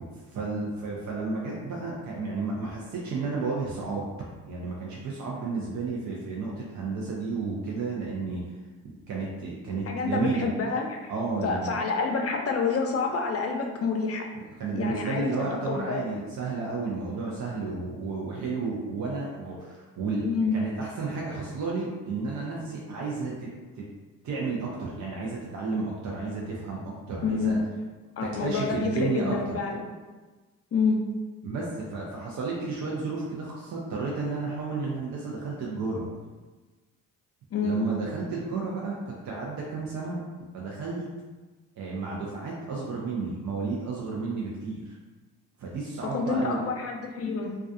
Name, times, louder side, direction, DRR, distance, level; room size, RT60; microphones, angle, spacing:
voice 1, 0.3-4.1 4.5-8.4 9.1-10.5 11.1-11.8 14.6-23.8 24.2-27.6 28.4-29.6 31.4-36.1 37.6-40.2 40.5-41.1 41.8-45.0 45.6-46.6, right 3 dB, 50° right, -3 dB, 0.6 m, -32 dB
voice 2, 9.9-11.1 11.4-14.2 14.7-15.3 15.6-16.2 20.2-20.5 27.2-27.6 28.2-29.8 30.7-31.0 37.5-37.8 46.0-47.6, left 4 dB, 40° left, 2 dB, 0.5 m, -28 dB
2.3 x 2.3 x 2.6 m, 1.3 s
supercardioid pair, 60°, 36 cm